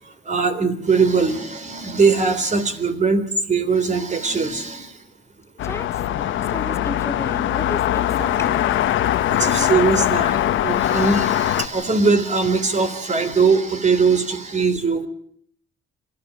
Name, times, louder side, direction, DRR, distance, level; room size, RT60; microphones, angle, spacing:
voice 1, 0.3-4.9 9.4-15.1, right 4 dB, 35° right, 9 dB, 3.5 m, -20 dB
sound 1, 5.6-11.7, left 12 dB, 80° left, 1.3 m, -21 dB
voice 2, 5.6-8.8, left 2 dB, 15° left, 6 dB, 2.4 m, -33 dB
27.5 x 14.0 x 8.8 m, 0.65 s
cardioid pair, 90°, 20 cm